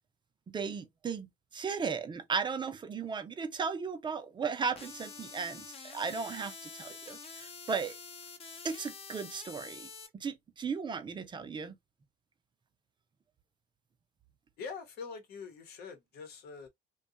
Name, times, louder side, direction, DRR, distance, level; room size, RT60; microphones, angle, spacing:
voice 1, 0.5-5.7 5.9-8.0 8.6-9.9 10.1-11.7, right 5 dB, 25° right, 0.5 m, -36 dB
sound 1, 4.8-10.1, left 5 dB, 35° left, 0.6 m, -47 dB
voice 2, 14.6-16.7, left 5 dB, 70° left, 0.9 m, -44 dB
2.7 x 2.2 x 2.4 m
cardioid pair, 110°, 17 cm